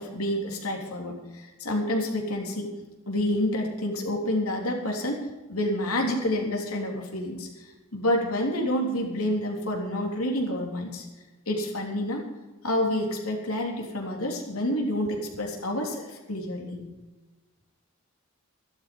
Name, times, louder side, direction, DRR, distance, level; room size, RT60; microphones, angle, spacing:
voice 1, 0.0-2.7 3.1-5.2 5.5-7.5 7.9-11.1 11.5-12.2 12.6-16.9, left 1 dB, 90° left, 1 dB, 3.4 m, -28 dB
13.0 x 12.5 x 5.3 m, 1.2 s
head